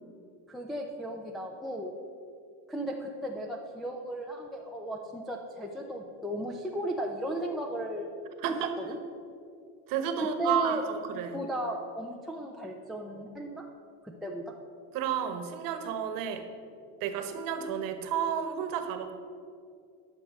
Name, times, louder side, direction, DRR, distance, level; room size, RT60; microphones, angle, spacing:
voice 1, 0.5-1.9 2.7-8.1 8.5-9.0 10.2-10.8 11.3-13.6 14.0-14.4, right 1 dB, ahead, -1 dB, 0.5 m, -35 dB
voice 2, 8.4-8.7 9.9-11.4 14.9-16.4 17.0-19.1, right 8 dB, 55° right, 7 dB, 1.2 m, -31 dB
11.0 x 6.6 x 6.4 m, 2.4 s
cardioid pair, 150°, 40 cm